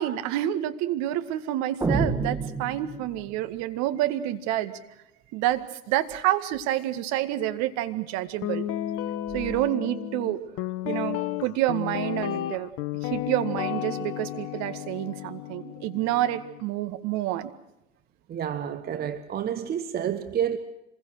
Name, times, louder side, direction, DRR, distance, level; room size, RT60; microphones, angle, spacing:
voice 1, 0.0-4.7 5.3-5.6 5.9-8.7 9.3-10.4 10.8-12.7 13.0-17.5, right 14 dB, 45° right, 1.9 m, -28 dB
sound 1, 1.8-3.4, right 3 dB, 10° right, 1.7 m, -28 dB
Guitar, 8.4-16.6, left 13 dB, 35° left, 1.2 m, -33 dB
voice 2, 18.3-20.6, right 9 dB, 25° right, 1.3 m, -29 dB
26.5 x 21.5 x 6.4 m
hypercardioid pair, 100°, 40 cm